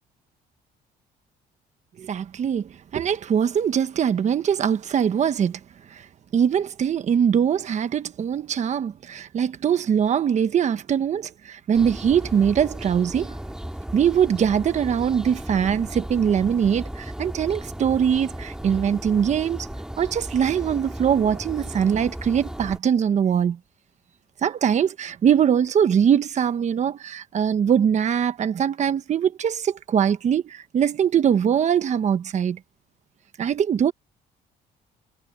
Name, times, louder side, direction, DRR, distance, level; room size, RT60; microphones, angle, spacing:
voice 1, 2.0-5.6 5.9-6.0 6.3-13.4 13.9-19.7 20.0-23.6 24.4-32.6 33.4-33.9, right 8 dB, 45° right, 1.2 m, -22 dB
sound 1, 11.7-22.8, right 1 dB, 5° right, 2.0 m, -35 dB
cardioid pair, 110°, 17 cm